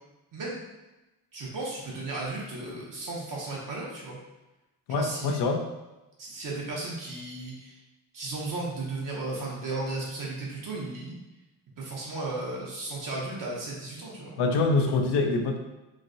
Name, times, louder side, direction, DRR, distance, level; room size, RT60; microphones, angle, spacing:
voice 1, 1.3-4.2 4.9-5.4 6.2-7.8 8.1-11.2 11.8-14.3, right 2 dB, 55° right, -4 dB, 0.7 m, -35 dB
voice 2, 4.9-5.7 14.4-15.6, left 3 dB, 80° left, 4 dB, 0.5 m, -25 dB
3.1 x 2.6 x 2.6 m, 1.0 s
cardioid pair, 130°, 40 cm